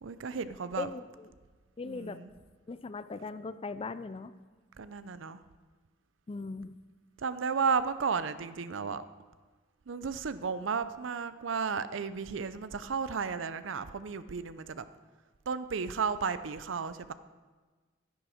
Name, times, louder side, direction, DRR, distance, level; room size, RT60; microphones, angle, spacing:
voice 1, 0.0-0.9 1.8-2.3 4.8-5.4 7.2-9.0 9.9-14.8 15.5-17.1, right 5 dB, 80° right, 13 dB, 0.6 m, -33 dB
voice 2, 0.8-1.3 1.8-2.2 2.7-4.3 6.3-6.7, left 3 dB, 30° left, 13 dB, 0.4 m, -39 dB
12.0 x 10.5 x 5.0 m, 1.3 s
head